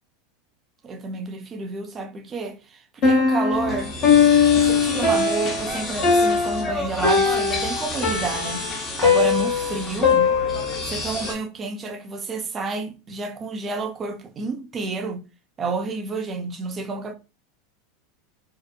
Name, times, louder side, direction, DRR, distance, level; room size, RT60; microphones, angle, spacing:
voice 1, 0.8-4.0 4.6-8.6 9.0-10.3 10.8-15.2 15.6-17.1, right 4 dB, 30° right, 0.5 m, -30 dB
Piano, 3.0-10.9, left 5 dB, 50° left, 1.0 m, -20 dB
sound 1, 3.5-11.3, left 2 dB, 30° left, 0.7 m, -31 dB
2.8 x 2.1 x 2.2 m
hypercardioid pair, 85°, 0 cm